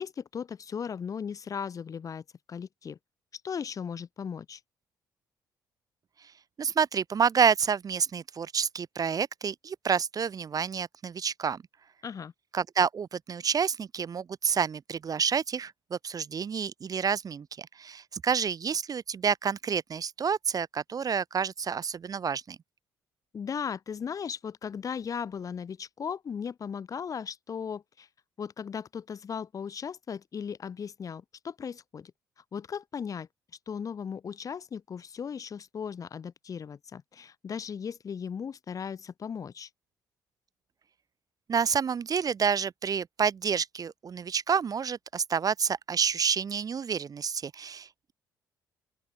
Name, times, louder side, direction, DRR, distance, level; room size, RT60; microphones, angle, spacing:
voice 1, 0.0-2.2 2.5-3.0 3.4-4.6 12.0-12.3 23.3-28.1 28.4-32.1 32.5-33.3 33.7-39.7, left 7 dB, 35° left, 0.6 m, -37 dB
voice 2, 6.6-11.6 12.5-22.6 41.5-48.1, right 6 dB, 35° right, 0.7 m, -29 dB
open air
figure-of-eight pair, 50°, 10 cm